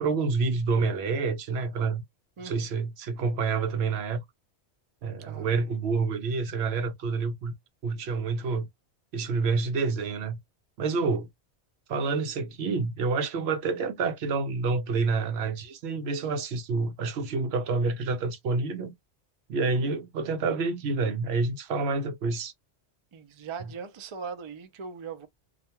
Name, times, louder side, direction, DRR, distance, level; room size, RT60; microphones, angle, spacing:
voice 1, 0.0-2.0 2.4-4.2 5.0-7.5 7.8-8.7 9.1-10.4 10.8-11.3 11.9-18.9 19.5-22.5, right 4 dB, 70° right, 0.8 m, -28 dB
voice 2, 2.4-2.7 5.3-5.5 23.1-25.3, right 5 dB, 50° right, 0.3 m, -39 dB
2.4 x 2.2 x 2.8 m
omnidirectional pair, 1.2 m